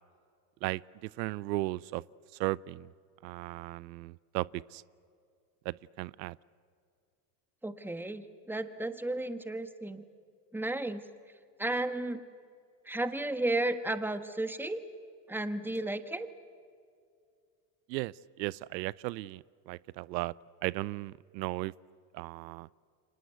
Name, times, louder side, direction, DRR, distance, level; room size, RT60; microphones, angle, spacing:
voice 1, 0.6-2.0 2.4-2.9 3.2-4.8 5.6-6.4 17.9-20.3 20.6-21.7 22.1-22.7, right 19 dB, 90° right, 22 dB, 0.6 m, -36 dB
voice 2, 7.6-10.0 10.5-11.0 11.6-12.2 12.8-14.8 15.3-16.3, right 2 dB, 5° right, 10 dB, 1.4 m, -33 dB
29.5 x 24.5 x 8.1 m, 2.3 s
supercardioid pair, 105°, 50 cm